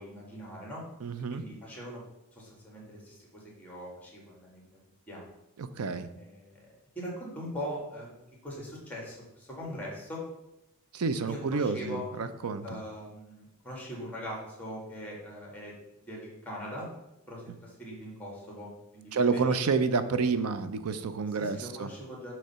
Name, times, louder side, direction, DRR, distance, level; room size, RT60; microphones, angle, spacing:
voice 1, 0.0-0.8 1.3-2.0 2.3-4.6 5.1-5.3 6.2-6.7 7.0-8.1 8.4-10.2 11.3-12.1 12.6-15.7 16.1-16.9 17.3-19.6 21.4-22.3, equal, 5° left, -3 dB, 1.8 m, -41 dB
voice 2, 1.0-1.4 5.6-6.1 10.9-12.8 19.1-21.9, right 4 dB, 90° right, 11 dB, 0.5 m, -29 dB
6.5 x 3.2 x 5.6 m, 0.89 s
head